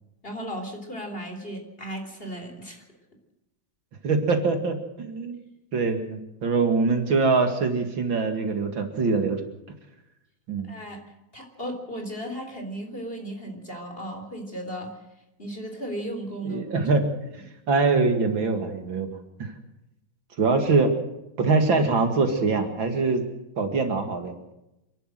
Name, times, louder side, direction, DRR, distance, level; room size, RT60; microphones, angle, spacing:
voice 1, 0.2-2.8 10.6-11.0 11.3-14.9 15.4-16.6, right 1 dB, 25° left, 4 dB, 3.8 m, -35 dB
voice 2, 4.0-5.4 5.7-9.4 10.5-10.7 16.4-17.0 17.7-19.1 19.4-19.5 20.4-20.9 21.4-23.2 23.6-24.3, right 4 dB, 70° right, 6 dB, 2.9 m, -23 dB
28.5 x 12.0 x 7.7 m, 0.90 s
omnidirectional pair, 2.2 m